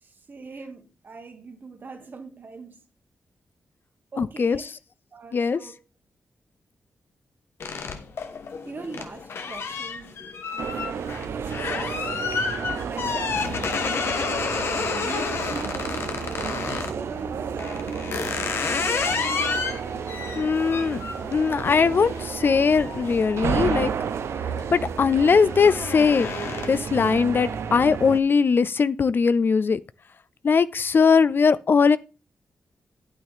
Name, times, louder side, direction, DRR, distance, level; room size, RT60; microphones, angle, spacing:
voice 1, 0.0-2.8 4.1-4.8 5.1-5.8 8.6-10.2 10.5-12.1 12.8-16.0 16.7-19.0, right 4 dB, 50° right, 2.1 m, -41 dB
voice 2, 4.2-4.6 5.3-5.6 20.4-21.0 21.3-23.9 24.7-29.8 30.4-32.0, left 5 dB, 55° left, 0.5 m, -20 dB
sound 1, 7.6-17.0 17.6-24.0 24.4-24.8 25.1-27.0, left 5 dB, 70° left, 1.4 m, -30 dB
sound 2, 10.6-28.2, right 7 dB, 80° right, 0.7 m, -32 dB
9.2 x 8.9 x 3.6 m
cardioid pair, 70°, 4 cm